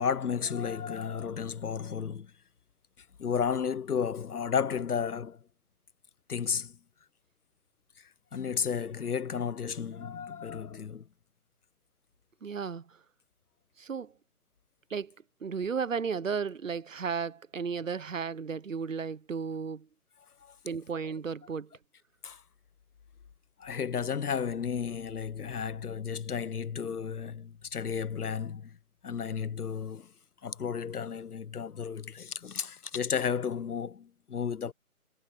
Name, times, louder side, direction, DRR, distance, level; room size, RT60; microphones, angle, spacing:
voice 1, 0.0-2.3 3.2-5.4 6.3-6.8 8.0-11.1 20.4-20.6 22.2-22.4 23.6-28.8 29.0-30.1 30.4-34.7, left 7 dB, 85° left, 0.9 m, -33 dB
voice 2, 12.4-13.0 13.8-14.1 14.9-15.1 15.4-19.9 20.6-21.7, right 6 dB, 60° right, 1.0 m, -34 dB
figure-of-eight pair, 160°, 44 cm